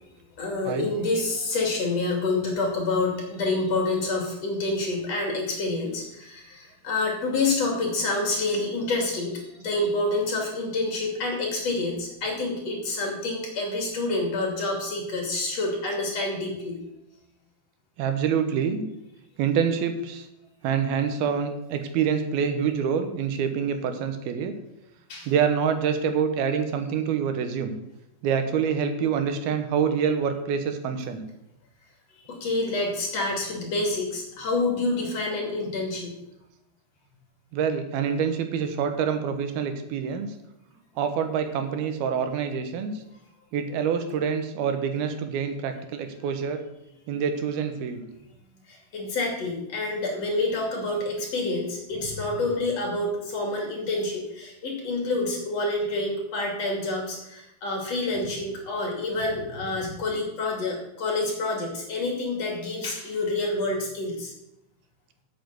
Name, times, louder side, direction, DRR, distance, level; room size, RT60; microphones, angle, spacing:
voice 1, 0.4-16.8 25.1-25.3 32.3-36.2 48.7-64.3, left 2 dB, 45° left, 0 dB, 3.3 m, -28 dB
voice 2, 18.0-18.8 19.4-20.3 20.6-24.5 25.3-27.7 28.2-31.2 37.5-40.3 41.0-42.9 43.5-46.6 47.1-48.0, right 7 dB, 80° right, 7 dB, 3.0 m, -26 dB
8.7 x 7.6 x 8.0 m, 0.85 s
omnidirectional pair, 4.3 m